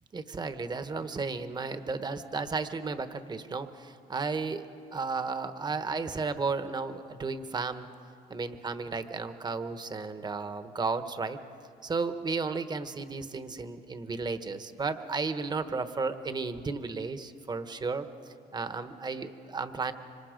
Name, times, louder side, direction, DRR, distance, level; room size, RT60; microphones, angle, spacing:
voice 1, 0.1-7.9 8.3-11.4 11.8-19.9, right 4 dB, 25° right, 10 dB, 1.2 m, -34 dB
25.5 x 25.5 x 5.2 m, 2.4 s
cardioid pair, 110°, 17 cm